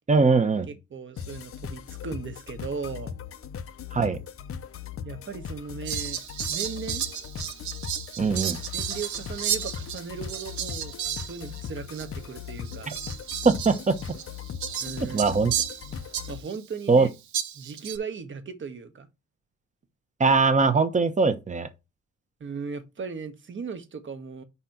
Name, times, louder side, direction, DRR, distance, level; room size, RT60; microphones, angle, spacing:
voice 1, 0.1-0.7 3.9-4.2 8.2-8.6 12.9-13.0 13.4-14.0 15.0-15.5 16.9-17.1 20.2-21.7, right 4 dB, 25° right, 1.0 m, -21 dB
voice 2, 0.7-3.2 5.0-6.2 6.5-7.1 8.7-12.9 14.8-15.4 16.3-17.1 17.5-19.1 22.4-24.4, right 5 dB, 40° right, 1.4 m, -37 dB
sound 1, 1.2-16.4, left 8 dB, 45° left, 0.7 m, -39 dB
Fowl, 5.8-11.7 11.9-12.1 12.6-16.6 17.3-18.0, right 9 dB, 75° right, 1.1 m, -33 dB
5.2 x 4.2 x 5.8 m
cardioid pair, 90°, 30 cm